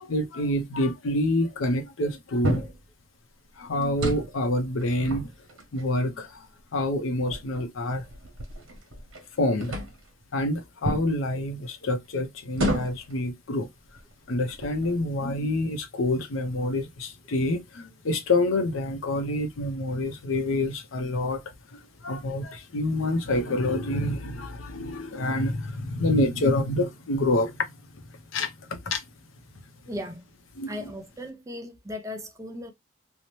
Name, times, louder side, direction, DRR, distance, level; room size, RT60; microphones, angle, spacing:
voice 1, 0.0-2.7 3.6-5.3 5.7-6.4 6.7-8.0 9.4-9.8 10.3-13.7 14.3-21.4 21.7-27.6 27.9-28.0 28.3-29.0 29.9-30.0 30.6-30.7, left 1 dB, 75° left, 0.6 m, -27 dB
sound 1, 2.4-2.8 3.8-4.4 4.8-5.9 6.6-6.7 7.2-9.2 9.6-10.1 10.8-11.1 12.5-13.1 13.8-14.0 14.5-15.0, right 1 dB, 80° right, 0.9 m, -31 dB
voice 2, 29.9-30.2 30.7-32.7, left 1 dB, 15° right, 0.4 m, -37 dB
2.7 x 2.1 x 3.0 m
head